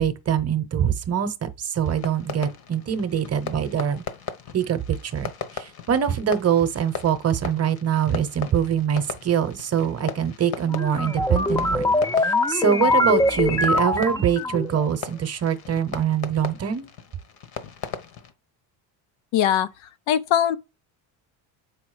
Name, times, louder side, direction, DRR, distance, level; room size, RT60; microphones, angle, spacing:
voice 1, 0.0-4.0 4.5-11.9 12.2-16.9, right 8 dB, 30° right, 0.9 m, -24 dB
Fireworks, 1.8-18.3, left 8 dB, 50° left, 1.2 m, -38 dB
sound 1, 10.7-14.9, left 2 dB, 10° left, 0.5 m, -23 dB
voice 2, 19.3-19.7 20.1-20.6, left 10 dB, 75° left, 0.8 m, -20 dB
7.0 x 5.0 x 4.9 m
cardioid pair, 110°, 47 cm